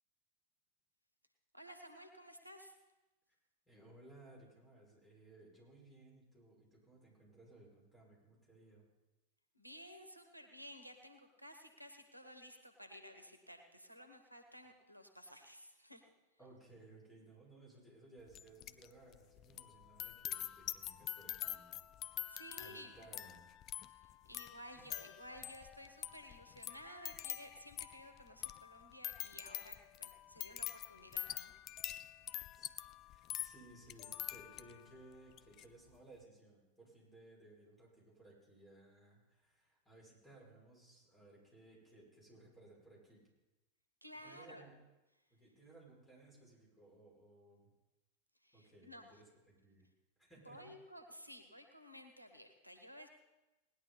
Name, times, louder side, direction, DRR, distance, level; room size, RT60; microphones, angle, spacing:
voice 1, 1.5-2.7 9.5-16.1 22.3-23.1 23.9-32.2 44.0-44.7 48.4-49.2 50.4-53.1, equal, 90° right, 6 dB, 1.3 m, -55 dB
voice 2, 3.7-8.9 16.4-21.8 22.0-23.4 24.7-24.9 32.5-32.7 33.1-43.2 44.2-44.7 45.3-47.6 48.5-49.9 50.2-50.7, right 2 dB, 10° left, -3 dB, 6.3 m, -60 dB
sound 1, 18.3-18.9 19.1-34.9 35.3-35.6, left 12 dB, 35° left, 0.5 m, -46 dB
18.5 x 10.5 x 4.2 m, 1.1 s
figure-of-eight pair, 90°, 0 cm